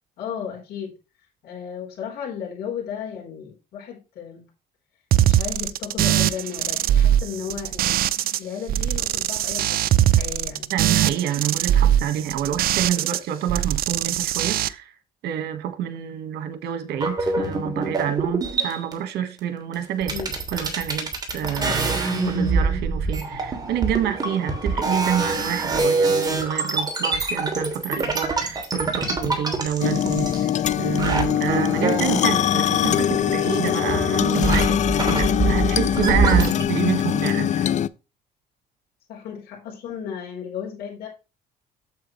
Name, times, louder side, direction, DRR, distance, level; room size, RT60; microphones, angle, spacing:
voice 1, 0.2-0.9 1.4-4.5 5.2-8.0 8.4-10.7 20.1-20.4 21.4-21.9 39.1-41.1, left 8 dB, 70° left, 4.3 m, -34 dB
sound 1, 5.1-8.4 8.7-13.2 13.5-14.7, right 12 dB, 60° right, 0.6 m, -21 dB
voice 2, 10.7-14.9 15.2-20.1 20.5-30.5 30.8-37.7, right 10 dB, 75° right, 1.7 m, -28 dB
sound 2, 16.9-18.9 19.7-19.8 20.0-30.7 31.0-33.6 33.9-36.6, right 3 dB, 25° right, 3.0 m, -25 dB
sound 3, 29.8-37.9, left 10 dB, 45° left, 0.5 m, -22 dB
8.8 x 7.7 x 3.2 m
cardioid pair, 110°, 17 cm